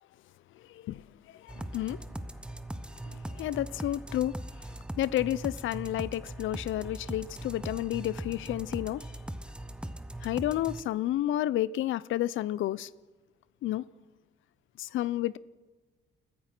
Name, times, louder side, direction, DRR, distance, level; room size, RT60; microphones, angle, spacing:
voice 1, 0.7-1.0 1.5-2.0 3.4-4.3 5.0-9.0 10.2-12.9 13.6-13.8 14.8-15.4, left 13 dB, 85° left, 0.6 m, -30 dB
sound 1, 1.5-10.8, right 1 dB, 5° right, 0.9 m, -40 dB
29.5 x 14.5 x 6.1 m
cardioid pair, 135°, 20 cm